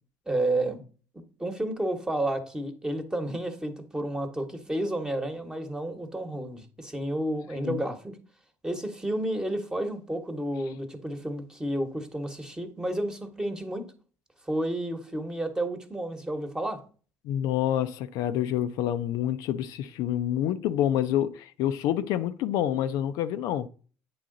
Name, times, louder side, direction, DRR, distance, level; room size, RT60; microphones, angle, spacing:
voice 1, 0.3-0.8 1.1-8.2 8.6-13.9 14.5-16.8, right 1 dB, 10° right, 1.1 m, -31 dB
voice 2, 17.2-23.7, left 11 dB, 75° left, 0.4 m, -27 dB
8.5 x 3.8 x 3.8 m
supercardioid pair, 90°, 6 cm